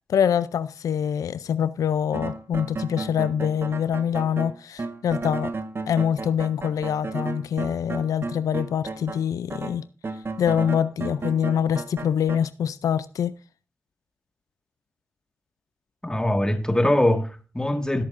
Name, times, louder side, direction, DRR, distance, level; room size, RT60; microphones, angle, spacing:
voice 1, 0.1-5.5 5.9-9.9 10.4-13.3, left 8 dB, 85° left, 0.4 m, -25 dB
sound 1, 2.1-9.2 9.5-12.4, right 3 dB, 45° right, 1.1 m, -33 dB
voice 2, 16.0-18.0, left 1 dB, 10° left, 1.7 m, -22 dB
17.0 x 8.4 x 2.5 m
cardioid pair, 50°, 6 cm